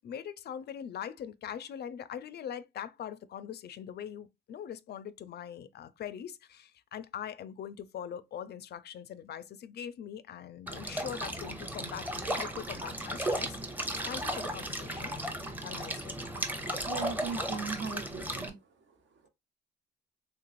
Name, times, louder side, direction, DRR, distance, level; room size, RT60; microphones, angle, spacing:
voice 1, 0.0-13.6 14.0-15.2 15.6-16.1, left 9 dB, 55° left, 0.4 m, -42 dB
sound 1, 10.7-18.5, right 1 dB, 10° right, 0.7 m, -35 dB
voice 2, 16.8-18.6, right 5 dB, 65° right, 0.9 m, -38 dB
3.3 x 3.0 x 2.4 m
cardioid pair, 90°, 20 cm